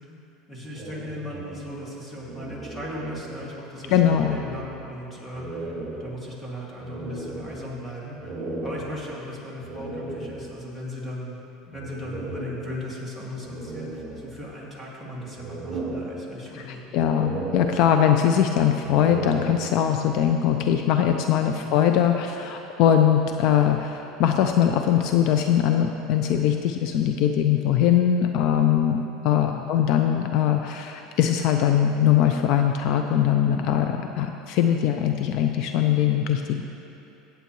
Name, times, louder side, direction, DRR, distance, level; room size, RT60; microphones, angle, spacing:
voice 1, 0.5-8.3 8.6-17.1 29.5-29.7, left 1 dB, 10° left, -5 dB, 2.3 m, -37 dB
sound 1, 0.7-3.6 3.8-4.9 5.3-10.8 11.7-13.0 13.4-14.8 15.2-16.7 17.0-18.3 18.7-20.1, right 2 dB, 20° right, 2.2 m, -36 dB
voice 2, 3.9-4.4 16.5-36.6, left 9 dB, 60° left, 5 dB, 0.5 m, -21 dB
16.5 x 8.0 x 3.2 m, 2.9 s
supercardioid pair, 130°, 0 cm